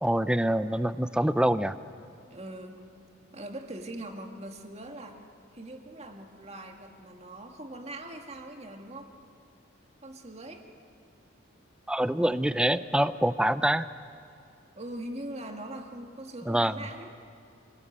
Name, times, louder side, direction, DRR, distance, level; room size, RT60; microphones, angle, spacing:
voice 1, 0.0-1.8 11.9-13.9 16.5-16.7, right 1 dB, 5° right, 13 dB, 0.5 m, -25 dB
voice 2, 2.3-2.8 3.3-5.2 5.5-9.1 10.0-10.7 14.7-17.1, right 1 dB, 35° right, 3 dB, 2.1 m, -41 dB
26.0 x 19.0 x 8.8 m, 2.5 s
head